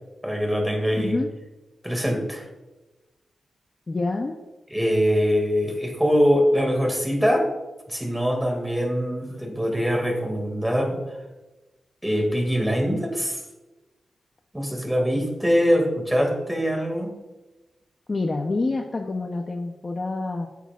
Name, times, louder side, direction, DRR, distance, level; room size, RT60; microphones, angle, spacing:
voice 1, 0.2-1.2 1.8-2.5 4.7-7.4 7.9-11.0 12.0-13.4 14.5-17.1, equal, 5° right, 2 dB, 2.1 m, -23 dB
voice 2, 0.9-1.3 3.9-4.4 18.1-20.5, left 3 dB, 30° left, 4 dB, 0.7 m, -27 dB
15.0 x 8.6 x 2.4 m, 1.1 s
wide cardioid pair, 135°, 0 cm